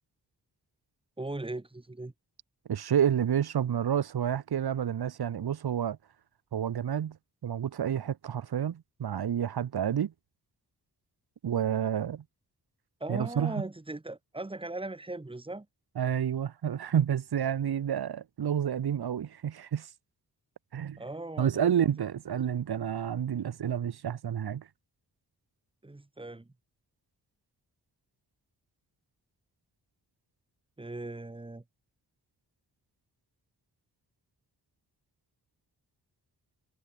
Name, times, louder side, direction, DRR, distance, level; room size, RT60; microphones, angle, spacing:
voice 1, 1.2-2.1 13.0-15.7 21.0-21.9 25.8-26.5 30.8-31.6, right 2 dB, 15° right, 1.7 m, -38 dB
voice 2, 2.7-6.0 6.5-7.2 7.4-10.1 11.4-12.2 13.1-13.5 16.0-19.9 20.7-21.0 21.4-24.6, right 9 dB, 85° right, 2.2 m, -29 dB
wide cardioid pair, 150°, 37 cm